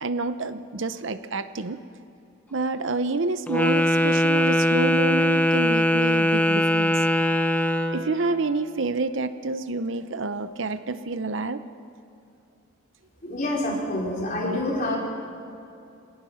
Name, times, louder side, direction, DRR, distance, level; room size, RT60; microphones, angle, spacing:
voice 1, 0.0-1.8 2.5-7.0 7.9-11.6, right 3 dB, 65° right, 11 dB, 0.8 m, -28 dB
Wind instrument woodwind instrument, 3.5-8.1, left 1 dB, 5° left, 0.9 m, -21 dB
voice 2, 13.2-15.0, left 1 dB, 40° left, -3 dB, 4.8 m, -27 dB
25.5 x 18.5 x 5.7 m, 2.6 s
head